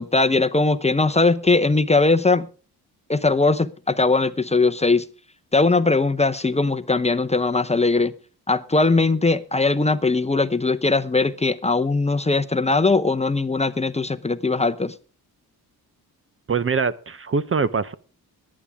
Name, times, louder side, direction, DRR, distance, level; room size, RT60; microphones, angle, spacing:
voice 1, 0.0-2.5 3.1-5.1 5.5-8.1 8.5-14.9, left 3 dB, 15° left, 0.7 m, -20 dB
voice 2, 16.5-17.9, right 5 dB, 35° right, 0.7 m, -23 dB
21.5 x 8.7 x 3.6 m
cardioid pair, 95°, 37 cm